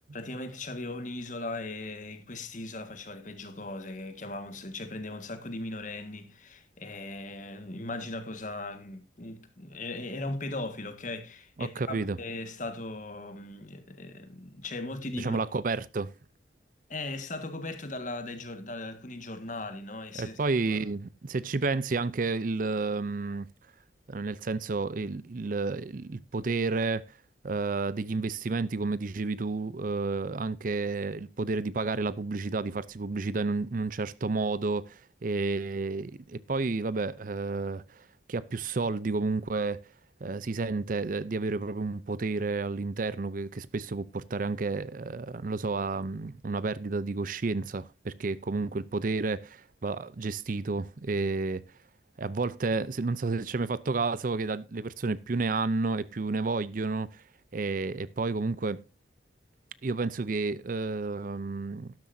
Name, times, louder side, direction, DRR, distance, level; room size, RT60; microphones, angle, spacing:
voice 1, 0.1-15.4 16.9-20.8, left 2 dB, 40° left, 1.6 m, -38 dB
voice 2, 11.6-12.2 15.1-16.1 20.2-23.5 24.1-27.1 27.4-39.8 40.2-51.6 52.2-57.2 57.5-58.8 59.8-61.9, right 3 dB, 45° right, 0.5 m, -31 dB
12.5 x 12.0 x 2.6 m
head